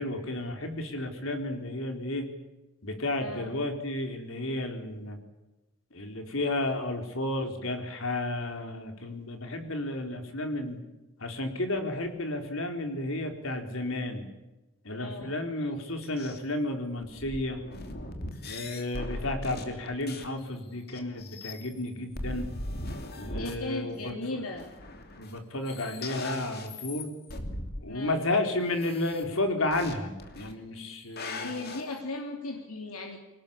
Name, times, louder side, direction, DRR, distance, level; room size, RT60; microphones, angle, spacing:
voice 1, 0.0-2.3 2.8-5.2 5.9-10.8 11.2-14.3 14.8-17.6 18.4-22.5 23.1-24.4 25.2-27.1 27.8-31.5, left 2 dB, 65° left, 5 dB, 4.0 m, -32 dB
voice 2, 3.2-3.5 14.9-15.4 23.4-24.7 27.9-28.3 31.4-33.2, left 2 dB, 80° left, 3 dB, 3.0 m, -37 dB
sound 1, 16.0-16.4 17.0-20.4 20.9-21.9 22.1-23.6 24.1-24.2 24.6-25.4 25.7-27.8 28.7-29.2 29.7-29.9 30.2-30.5 30.9-31.8, left 2 dB, 45° left, 2.9 m, -39 dB
23.5 x 19.0 x 8.7 m, 1.0 s
head